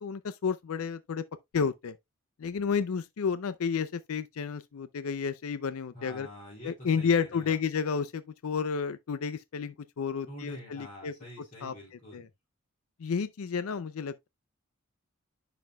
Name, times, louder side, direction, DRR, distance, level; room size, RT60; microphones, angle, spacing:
voice 1, 0.0-1.2 1.5-2.0 2.4-6.3 6.6-11.1 11.6-11.7 12.1-12.2 13.0-14.3, left 6 dB, 75° left, 0.4 m, -31 dB
voice 2, 5.9-7.6 10.3-12.3, equal, 35° left, 2.8 m, -46 dB
10.5 x 4.1 x 2.2 m
head